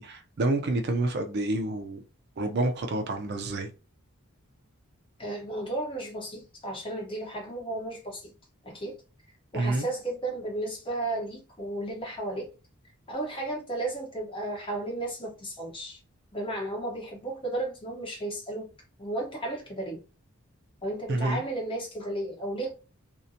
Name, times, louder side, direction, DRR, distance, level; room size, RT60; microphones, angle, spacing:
voice 1, 0.0-2.0 2.4-3.7 9.5-9.9 21.1-21.4, right 2 dB, 50° right, 0.4 m, -28 dB
voice 2, 5.2-8.3 8.6-9.0 9.5-12.5 13.1-16.0 16.3-18.7 19.0-20.0 20.8-22.7, right 2 dB, 25° left, 0.8 m, -34 dB
2.7 x 2.1 x 2.5 m
head